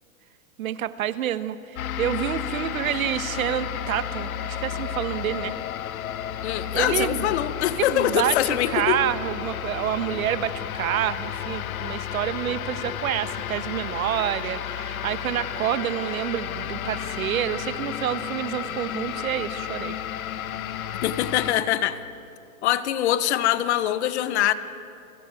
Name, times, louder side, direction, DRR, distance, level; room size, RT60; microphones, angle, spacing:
voice 1, 0.6-5.5 6.7-7.3 7.6-20.0, right 11 dB, 75° right, 13 dB, 1.5 m, -28 dB
sound 1, 1.8-21.5, left 10 dB, 80° left, 1.5 m, -32 dB
voice 2, 6.4-9.0 21.0-22.0 22.6-24.5, left 12 dB, 50° left, 13 dB, 1.3 m, -23 dB
29.5 x 22.0 x 9.2 m, 2.6 s
supercardioid pair, 160°, 42 cm